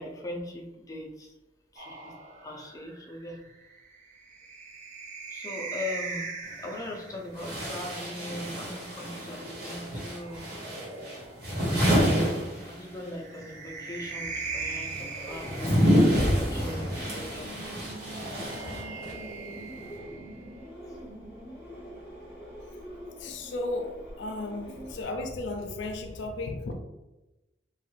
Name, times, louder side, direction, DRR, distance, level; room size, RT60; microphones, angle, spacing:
voice 1, 0.0-1.3 1.7-2.1 2.4-3.4 5.3-6.3 6.6-10.5 12.6-17.6 18.6-18.7, left 1 dB, 20° left, -1 dB, 0.5 m, -40 dB
sound 1, 1.8-7.3 8.7-11.7 13.0-16.5 17.7-20.7, right 4 dB, 45° right, 0.5 m, -41 dB
sound 2, 6.4-6.5 7.3-13.2 13.4-19.3, equal, 60° right, 1.2 m, -28 dB
sound 3, 15.2-25.0, equal, 15° right, 0.9 m, -44 dB
voice 2, 23.2-26.7, left 2 dB, 90° left, 4 dB, 0.4 m, -34 dB
3.0 x 2.3 x 3.0 m, 1.0 s
head